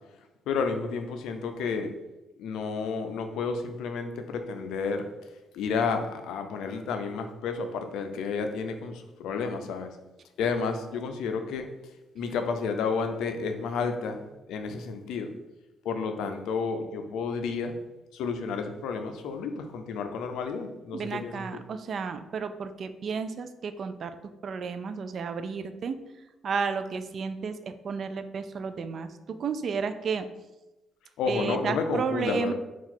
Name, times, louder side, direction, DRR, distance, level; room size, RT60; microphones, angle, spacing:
voice 1, 0.5-1.9 2.4-5.1 5.5-9.9 10.4-11.7 12.1-15.3 15.8-17.8 18.1-21.6 31.2-32.5, left 5 dB, 85° left, 6 dB, 0.4 m, -31 dB
voice 2, 20.9-24.2 24.4-26.0 26.4-30.3 31.3-32.5, right 5 dB, 55° right, 10 dB, 0.3 m, -32 dB
3.8 x 2.4 x 4.3 m, 1.0 s
cardioid pair, 90°, 0 cm